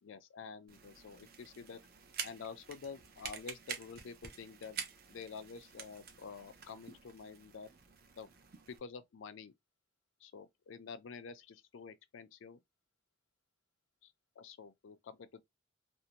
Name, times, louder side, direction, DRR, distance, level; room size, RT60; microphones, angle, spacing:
voice 1, 0.0-1.8 2.2-4.8 5.1-7.7 8.1-8.3 8.7-9.5 10.2-12.6 14.0-15.4, left 5 dB, 75° left, 0.4 m, -49 dB
sound 1, 0.7-8.8, right 7 dB, 50° right, 0.5 m, -48 dB
2.5 x 2.1 x 2.8 m
head